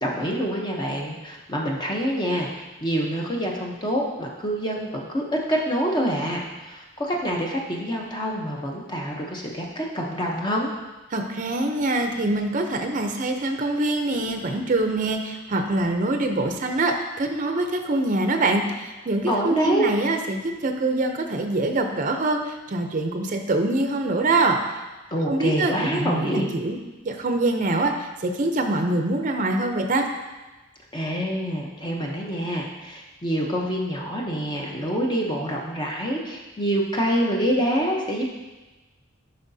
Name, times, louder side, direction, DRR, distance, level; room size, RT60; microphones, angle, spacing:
voice 1, 0.0-10.7 19.3-19.9 25.1-26.5 30.9-38.3, equal, 25° left, -1 dB, 0.8 m, -26 dB
voice 2, 11.1-24.6 25.3-30.0, right 2 dB, 40° right, 4 dB, 0.6 m, -24 dB
11.0 x 5.5 x 2.7 m, 1.2 s
head